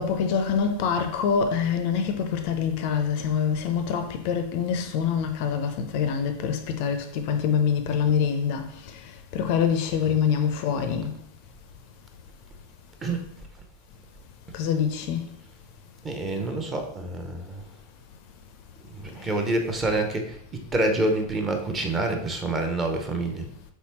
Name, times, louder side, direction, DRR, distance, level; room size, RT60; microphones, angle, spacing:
voice 1, 0.0-8.7 9.3-11.1 14.5-15.3, left 7 dB, 45° left, 0.4 m, -25 dB
voice 2, 16.0-17.6 18.9-23.5, right 2 dB, 20° right, 0.7 m, -27 dB
4.2 x 3.5 x 3.0 m
figure-of-eight pair, 90°, 0 cm